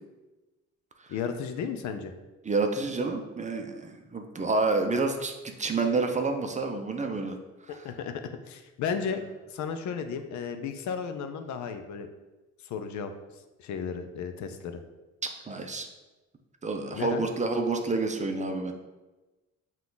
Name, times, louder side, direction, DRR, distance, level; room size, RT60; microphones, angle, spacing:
voice 1, 1.1-2.1 7.7-8.1 8.5-9.2 9.5-12.1 12.6-13.1 13.6-14.8 16.9-17.2, left 6 dB, 70° left, 8 dB, 0.5 m, -34 dB
voice 2, 2.4-7.4 7.6-7.9 15.5-15.9 16.6-18.7, right 3 dB, 25° right, 4 dB, 0.5 m, -29 dB
5.7 x 2.4 x 3.8 m, 1.1 s
cardioid pair, 90°, 30 cm